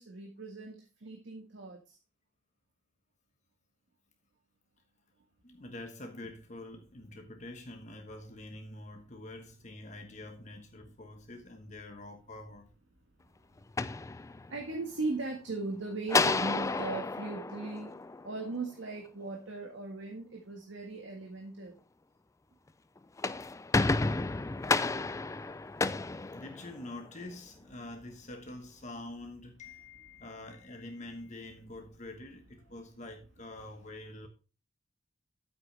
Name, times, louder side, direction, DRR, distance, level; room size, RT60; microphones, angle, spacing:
voice 1, 0.0-1.8 14.5-21.8, right 3 dB, 80° right, 1.7 m, -38 dB
voice 2, 5.4-12.7 24.5-24.7 26.3-34.3, left 2 dB, 40° left, 1.2 m, -46 dB
sound 1, 13.6-14.8 16.1-18.6 23.0-27.1, left 3 dB, 15° left, 0.3 m, -31 dB
9.5 x 8.3 x 3.3 m
head